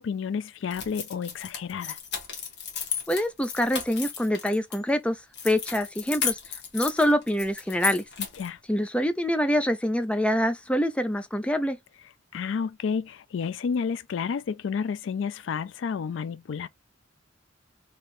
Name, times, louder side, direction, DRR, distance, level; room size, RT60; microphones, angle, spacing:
voice 1, 0.0-2.0 8.4-8.6 12.3-16.7, left 6 dB, 75° left, 0.3 m, -30 dB
sound 1, 0.7-4.8 5.3-8.5, left 7 dB, 55° left, 1.2 m, -34 dB
voice 2, 3.1-5.2 5.4-6.4 6.7-8.0 8.7-11.8, equal, 5° left, 0.4 m, -25 dB
3.1 x 2.9 x 4.3 m
head